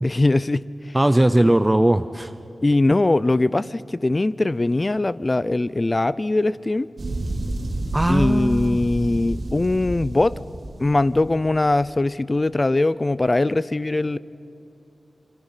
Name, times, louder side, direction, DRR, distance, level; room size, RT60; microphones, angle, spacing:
voice 1, 0.0-1.0 1.4-1.5 2.6-6.9 8.1-10.4 10.8-14.2, left 2 dB, 30° left, 18 dB, 0.5 m, -21 dB
voice 2, 0.9-2.3 7.9-8.8, right 1 dB, 15° right, 11 dB, 0.6 m, -19 dB
sound 1, 7.0-11.8, right 1 dB, 65° right, 2.9 m, -30 dB
28.5 x 23.5 x 5.7 m, 2.8 s
wide cardioid pair, 110°, 0 cm